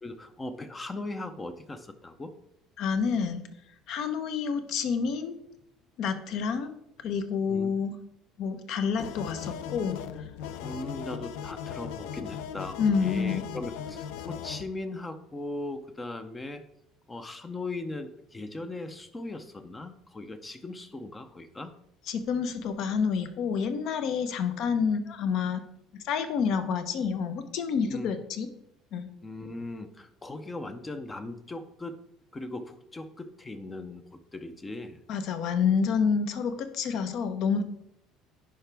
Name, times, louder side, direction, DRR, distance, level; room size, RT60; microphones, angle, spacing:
voice 1, 0.0-2.3 7.5-7.7 10.6-16.6 17.1-21.7 27.9-28.1 29.2-32.0 32.3-34.0 34.3-35.0, left 2 dB, 15° left, 10 dB, 0.5 m, -38 dB
voice 2, 2.8-3.4 3.9-5.4 6.0-6.8 7.0-8.0 8.4-10.0 12.8-13.4 22.1-25.6 25.9-28.5 28.9-29.1 35.1-37.6, left 6 dB, 55° left, 10 dB, 0.8 m, -28 dB
sound 1, 9.0-14.6, left 8 dB, 85° left, 0.5 m, -38 dB
10.0 x 4.9 x 3.4 m, 0.75 s
cardioid pair, 160°, 0 cm